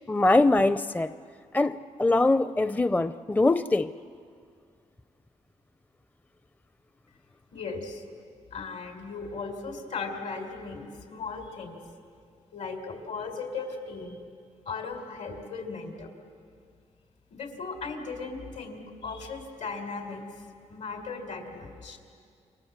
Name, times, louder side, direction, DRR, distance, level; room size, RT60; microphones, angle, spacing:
voice 1, 0.1-1.1 1.5-3.9, left 2 dB, 15° left, 12 dB, 0.6 m, -23 dB
voice 2, 7.5-8.0 8.5-11.8 12.5-14.2 14.7-16.1 17.3-20.3 20.7-22.0, left 4 dB, 70° left, 4 dB, 4.3 m, -37 dB
29.0 x 24.5 x 7.4 m, 2.2 s
cardioid pair, 85°, 12 cm